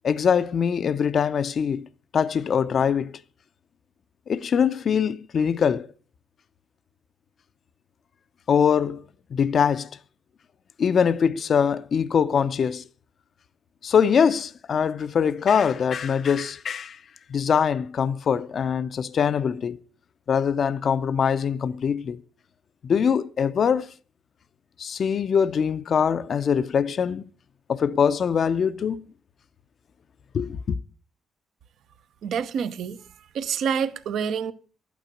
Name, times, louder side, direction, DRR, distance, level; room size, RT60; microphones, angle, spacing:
voice 1, 0.0-1.8 2.1-3.2 4.3-5.9 8.5-9.0 9.3-9.9 10.8-12.8 13.8-17.0 17.3-19.8 20.3-22.2 22.8-23.9 24.8-27.2 27.7-29.0 30.3-30.8, left 7 dB, 55° left, 0.5 m, -23 dB
voice 2, 32.2-33.0 33.3-34.5, right 7 dB, 70° right, 0.9 m, -27 dB
12.0 x 9.2 x 6.3 m
cardioid pair, 90°, 0 cm